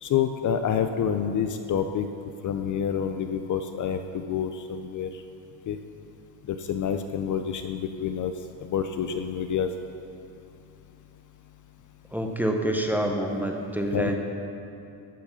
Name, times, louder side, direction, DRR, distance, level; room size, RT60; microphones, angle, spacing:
voice 1, 0.0-2.1 2.4-5.2 5.7-5.8 6.5-9.7 13.9-14.2, left 8 dB, 50° left, 8 dB, 0.4 m, -28 dB
voice 2, 12.1-14.2, right 1 dB, 5° right, 2 dB, 0.6 m, -27 dB
14.5 x 4.8 x 5.6 m, 2.7 s
cardioid pair, 155°, 41 cm